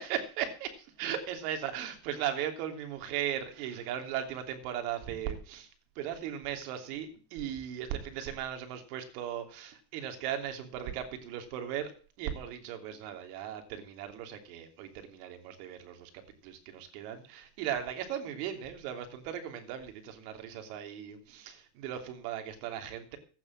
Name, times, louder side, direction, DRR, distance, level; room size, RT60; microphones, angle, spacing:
voice 1, 0.0-5.7 5.9-11.9 12.2-16.1 16.4-23.2, right 10 dB, 80° right, 6 dB, 3.2 m, -37 dB
12.0 x 9.1 x 7.6 m, 0.41 s
supercardioid pair, 120°, 46 cm